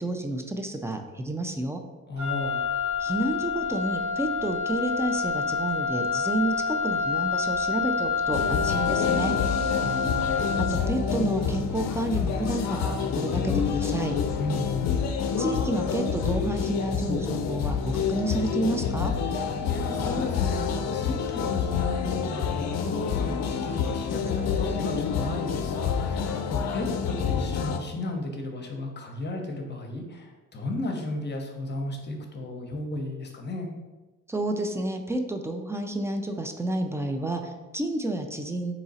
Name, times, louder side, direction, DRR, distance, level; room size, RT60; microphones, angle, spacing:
voice 1, 0.0-1.8 3.0-9.3 10.6-14.2 15.4-19.1 34.3-38.7, right 1 dB, 10° right, 5 dB, 0.4 m, -30 dB
voice 2, 2.1-2.6 9.7-10.0 14.4-14.9 19.6-33.7, left 2 dB, 35° left, 2 dB, 0.8 m, -34 dB
Wind instrument woodwind instrument, 2.2-10.9, left 5 dB, 70° right, 1.3 m, -28 dB
sound 1, 8.3-27.8, left 6 dB, 60° left, 0.5 m, -28 dB
3.7 x 3.0 x 4.1 m, 1.2 s
cardioid pair, 90°, 30 cm